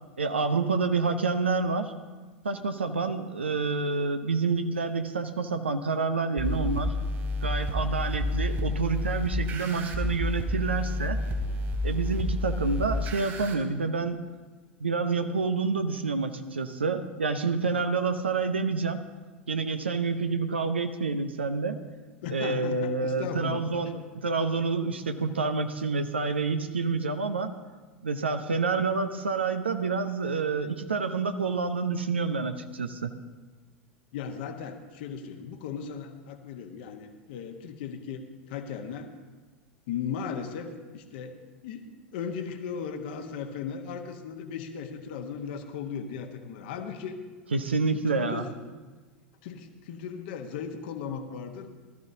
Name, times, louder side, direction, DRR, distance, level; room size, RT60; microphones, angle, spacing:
voice 1, 0.2-2.0 2.4-7.0 7.4-11.2 11.8-14.2 14.8-19.0 19.5-21.8 22.3-27.5 28.0-33.1 47.5-48.5, right 4 dB, 80° right, 8 dB, 0.7 m, -28 dB
sound 1, 6.4-13.5, left 1 dB, 45° right, 3.0 m, -30 dB
voice 2, 22.2-23.7 34.1-39.1 39.9-41.3 41.6-41.8 42.1-47.2 47.7-48.6 49.4-51.7, left 7 dB, 60° left, 5 dB, 1.2 m, -37 dB
19.0 x 13.0 x 2.7 m, 1.3 s
figure-of-eight pair, 80°, 6 cm